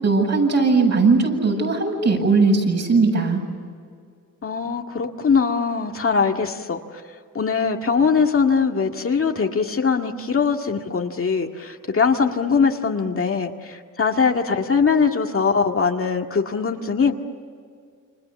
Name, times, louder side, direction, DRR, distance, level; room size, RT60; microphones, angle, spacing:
voice 1, 0.0-3.4, right 4 dB, 55° right, 1 dB, 8.0 m, -18 dB
voice 2, 4.4-7.0 7.3-17.1, left 5 dB, 40° left, 3 dB, 2.0 m, -21 dB
30.0 x 27.0 x 7.2 m, 2.2 s
cardioid pair, 95°, 32 cm